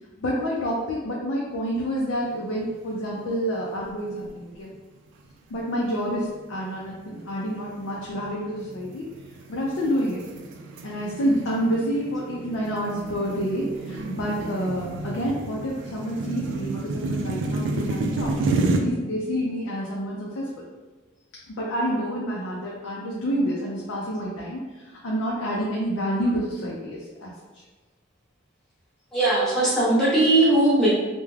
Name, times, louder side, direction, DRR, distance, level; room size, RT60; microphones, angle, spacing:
voice 1, 0.2-4.7 5.5-9.1 9.5-10.2 10.8-20.7 21.5-24.6 25.0-27.6, equal, 85° left, -4 dB, 0.4 m, -28 dB
sound 1, 2.3-2.9 3.2-3.3 4.0-4.5 5.1-5.3 5.9-18.8, right 2 dB, 70° right, 0.3 m, -31 dB
voice 2, 29.1-30.9, right 2 dB, ahead, -10 dB, 0.7 m, -19 dB
2.3 x 2.1 x 3.2 m, 1.3 s
head